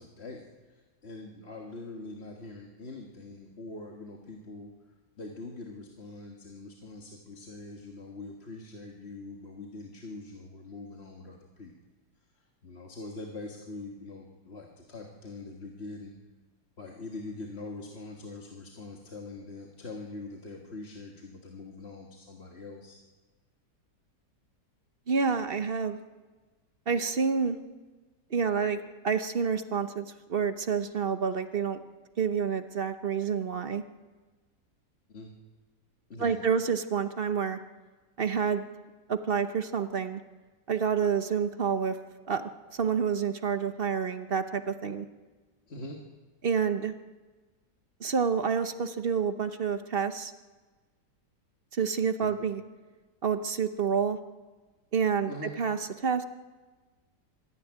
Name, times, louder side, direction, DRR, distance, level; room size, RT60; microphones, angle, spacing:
voice 1, 0.0-4.7 5.2-11.7 12.4-16.2 16.8-23.0 35.1-35.3 36.1-36.4 45.7-46.0 55.3-55.5, left 2 dB, 40° left, 0 dB, 1.8 m, -43 dB
voice 2, 25.1-26.0 26.9-27.6 28.3-28.8 29.0-31.8 32.2-33.8 36.2-37.6 38.2-38.6 39.1-40.2 40.7-42.0 42.3-45.1 46.4-46.9 48.0-50.3 51.7-52.6 53.2-54.2 54.9-56.2, right 6 dB, 45° right, 10 dB, 0.9 m, -28 dB
25.5 x 11.0 x 9.9 m, 1.3 s
omnidirectional pair, 1.8 m